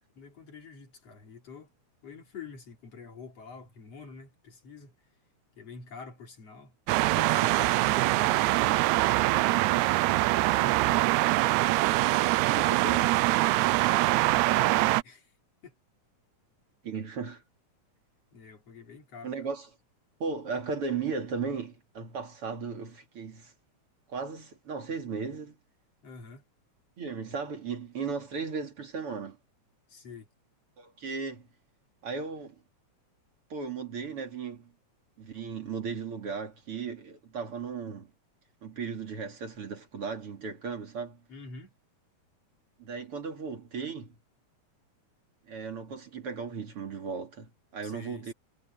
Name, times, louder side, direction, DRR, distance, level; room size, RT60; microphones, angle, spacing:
voice 1, 0.2-1.7 2.0-4.9 5.6-6.8 7.1-8.4 10.4-11.5 13.9-15.4 15.6-15.8 18.3-19.5 26.0-26.4 29.9-30.3 41.3-41.7 47.8-48.3, left 5 dB, 55° left, 4.6 m, -46 dB
sound 1, 6.9-15.0, right 18 dB, 85° right, 1.9 m, -24 dB
voice 2, 12.4-13.1 16.8-17.4 19.2-19.7 20.2-23.5 24.1-25.6 27.0-29.4 30.8-31.5 32.0-32.6 33.5-34.7 35.2-38.1 38.6-41.2 42.8-44.2 45.5-48.3, right 5 dB, 50° right, 3.3 m, -36 dB
omnidirectional pair, 3.3 m